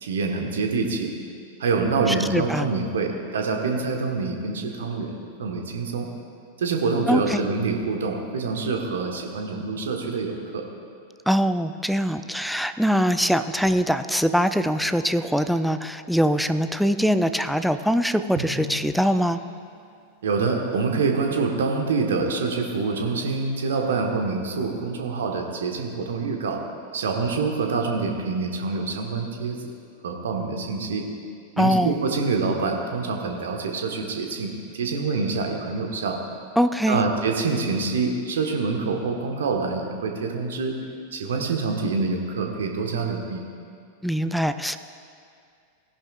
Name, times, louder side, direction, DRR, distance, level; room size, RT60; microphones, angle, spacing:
voice 1, 0.0-1.1 1.6-6.1 6.6-10.6 20.2-26.6 26.9-29.7 30.0-31.0 31.6-36.2 36.9-40.8 41.1-43.4, right 4 dB, 65° right, 2 dB, 1.2 m, -26 dB
voice 2, 2.1-2.7 7.1-7.4 11.3-19.4 31.6-32.0 36.6-37.0 44.0-44.8, equal, ahead, 11 dB, 0.4 m, -22 dB
Drum, 18.4-20.1, equal, 45° right, 1.3 m, -37 dB
18.0 x 10.5 x 2.4 m, 2.3 s
figure-of-eight pair, 90°, 0 cm